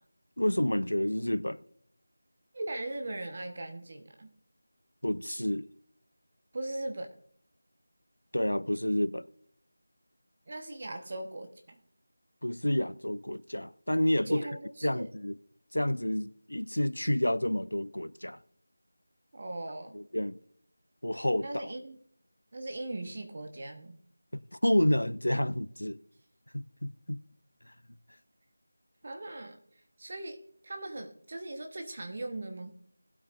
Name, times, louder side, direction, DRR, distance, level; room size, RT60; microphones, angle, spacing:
voice 1, 0.4-1.6 5.0-5.7 8.3-9.3 12.4-14.4 14.8-15.4 15.7-18.4 19.9-20.4 21.0-21.5 24.3-26.0 26.5-27.2, left 1 dB, 85° left, 0.6 m, -29 dB
voice 2, 2.5-4.3 6.5-7.1 10.5-11.8 14.3-15.1 19.3-19.9 21.4-22.0 22.5-23.9 29.0-29.6 30.0-32.8, right 2 dB, 40° right, 1.2 m, -39 dB
19.0 x 8.7 x 2.6 m
figure-of-eight pair, 170°, 0 cm